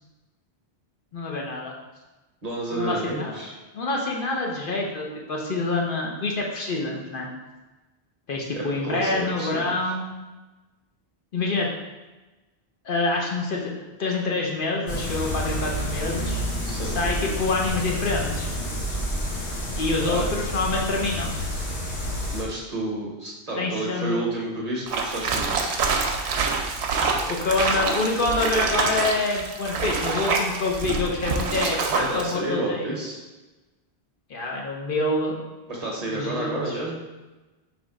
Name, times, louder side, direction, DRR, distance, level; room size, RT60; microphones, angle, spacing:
voice 1, 1.1-1.7 2.7-3.3 3.7-7.3 8.3-10.1 11.3-11.7 12.8-13.7 14.0-16.4 16.9-18.5 19.8-21.3 23.6-24.2 27.3-32.9 34.3-35.4 36.1-36.8, left 3 dB, 60° left, -1 dB, 0.8 m, -26 dB
voice 2, 2.4-3.5 8.5-9.9 16.6-17.0 20.1-20.3 22.3-25.8 31.9-33.2 35.7-37.0, right 2 dB, 40° right, -3 dB, 0.8 m, -31 dB
sound 1, 14.9-22.4, equal, 80° left, 1.2 m, -29 dB
sound 2, 24.9-32.3, right 4 dB, 80° right, 0.8 m, -26 dB
3.4 x 3.1 x 4.8 m, 1.1 s
omnidirectional pair, 1.1 m